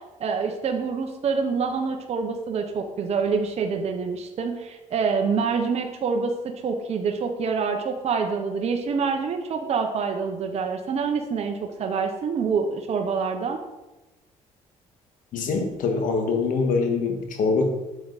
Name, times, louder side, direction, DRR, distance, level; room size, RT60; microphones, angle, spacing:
voice 1, 0.2-13.6, right 5 dB, 50° right, 4 dB, 1.0 m, -26 dB
voice 2, 15.3-17.7, left 4 dB, 75° left, 4 dB, 1.8 m, -24 dB
8.3 x 7.5 x 4.2 m, 1.1 s
cardioid pair, 100°, 14 cm